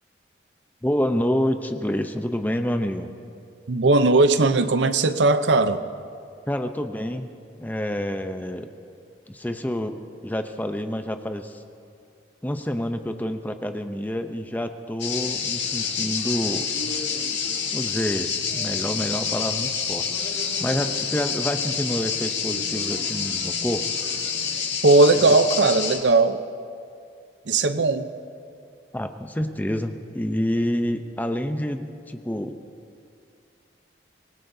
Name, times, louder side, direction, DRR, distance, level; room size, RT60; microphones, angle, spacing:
voice 1, 0.8-3.1 6.5-7.3 7.6-8.7 9.3-11.6 12.4-16.7 17.7-20.1 20.6-23.9 27.8-27.9 28.9-32.6, equal, 10° left, 7 dB, 0.6 m, -28 dB
voice 2, 3.7-5.8 24.8-26.4 27.5-28.1, right 3 dB, 75° right, 11 dB, 0.7 m, -18 dB
sound 1, 15.0-26.0, left 6 dB, 85° left, 2.2 m, -28 dB
25.0 x 20.0 x 2.7 m, 2.4 s
head